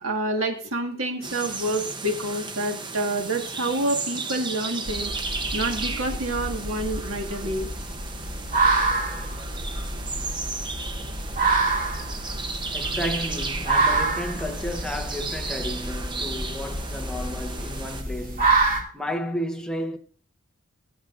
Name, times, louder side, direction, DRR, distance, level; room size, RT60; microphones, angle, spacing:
voice 1, 0.0-5.1 5.5-7.7, right 1 dB, 70° right, 1.7 m, -28 dB
sound 1, 1.2-18.0, right 3 dB, 20° right, 0.8 m, -34 dB
Fox Barking, 4.9-18.8, right 3 dB, 45° right, 2.2 m, -27 dB
voice 2, 12.7-18.7 18.9-20.0, equal, 5° left, 0.9 m, -32 dB
17.5 x 7.9 x 2.5 m
head